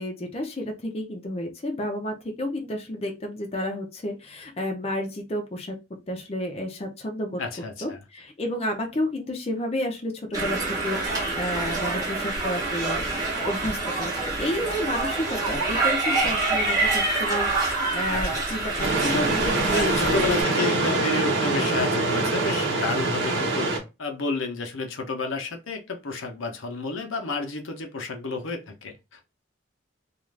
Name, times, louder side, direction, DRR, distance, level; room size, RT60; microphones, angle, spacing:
voice 1, 0.0-5.8 6.1-7.4 7.8-20.4, left 1 dB, 30° left, 2 dB, 0.5 m, -31 dB
voice 2, 7.4-8.0 18.1-18.4 19.7-23.7 24.0-29.2, left 4 dB, 85° left, 4 dB, 0.7 m, -31 dB
sound 1, 10.3-20.4, right 3 dB, 20° right, 0.8 m, -26 dB
sound 2, 18.8-23.8, right 3 dB, 65° right, 0.8 m, -24 dB
2.4 x 2.4 x 3.2 m, 0.26 s
head